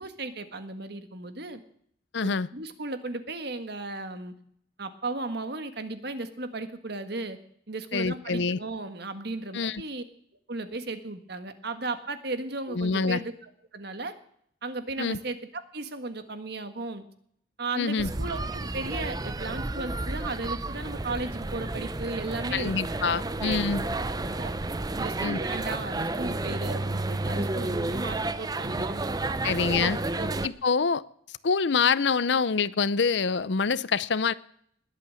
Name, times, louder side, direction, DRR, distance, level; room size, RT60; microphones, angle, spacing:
voice 1, 0.0-1.6 2.2-4.3 4.8-7.4 7.7-10.0 10.5-13.3 13.7-14.1 14.6-17.1 17.6-22.7 23.4-23.6 24.0-24.5 25.0-29.0 30.2-30.3, right 2 dB, 60° right, 9 dB, 1.6 m, -35 dB
voice 2, 2.1-2.5 7.9-8.6 9.5-9.8 12.7-13.2 15.0-15.2 17.8-18.1 22.5-23.8 25.2-25.4 29.4-30.0 30.4-31.0 31.4-34.3, left 5 dB, 65° left, 18 dB, 0.6 m, -26 dB
sound 1, 18.0-30.5, right 2 dB, 20° right, 0.6 m, -31 dB
20.5 x 8.5 x 7.7 m, 0.67 s
head